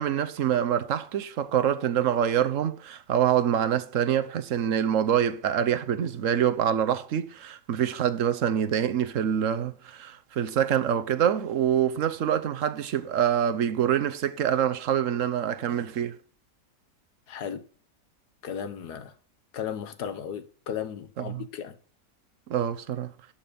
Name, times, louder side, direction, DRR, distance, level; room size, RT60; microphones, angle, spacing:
voice 1, 0.0-16.2 21.2-21.5 22.5-23.1, right 9 dB, 55° right, 1.1 m, -25 dB
voice 2, 17.3-17.6 18.4-19.1 19.5-21.7, left 8 dB, 70° left, 1.7 m, -35 dB
11.5 x 5.9 x 6.8 m
omnidirectional pair, 1.8 m